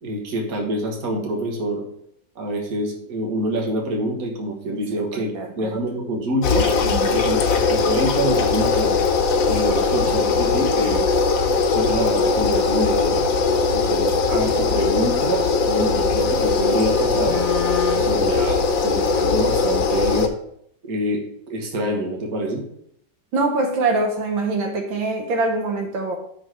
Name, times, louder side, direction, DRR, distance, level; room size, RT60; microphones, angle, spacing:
voice 1, 0.0-1.8 2.4-5.3 5.6-6.7 7.1-9.0 9.5-11.1 11.7-13.3 13.7-17.4 17.9-20.3 20.8-22.6, right 1 dB, 50° right, 1 dB, 1.8 m, -26 dB
voice 2, 5.1-5.8 6.8-7.1 23.3-26.2, right 3 dB, 85° right, 3 dB, 1.7 m, -24 dB
sound 1, 6.4-20.3, left 4 dB, 85° left, 1.6 m, -20 dB
6.5 x 4.0 x 6.2 m, 0.70 s
omnidirectional pair, 2.0 m